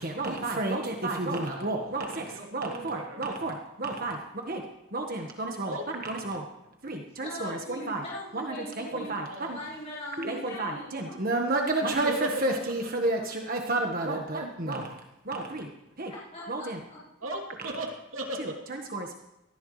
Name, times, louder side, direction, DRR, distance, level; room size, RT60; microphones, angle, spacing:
voice 1, 0.0-4.2 4.5-4.6 4.9-5.8 6.0-6.4 6.8-8.0 8.3-9.6 10.2-15.0 15.2-15.7 16.0-16.1 16.5-16.8 18.4-19.1, right 2 dB, 45° right, 2 dB, 1.4 m, -31 dB
voice 2, 1.3-3.3 5.6-5.9 8.9-9.6 12.1-12.7 17.2-18.6, right 1 dB, 75° right, 0 dB, 3.1 m, -37 dB
voice 3, 7.2-9.1 9.4-11.1 16.0-17.0, left 1 dB, 35° left, -9 dB, 5.2 m, -41 dB
19.5 x 14.5 x 3.3 m, 0.91 s
head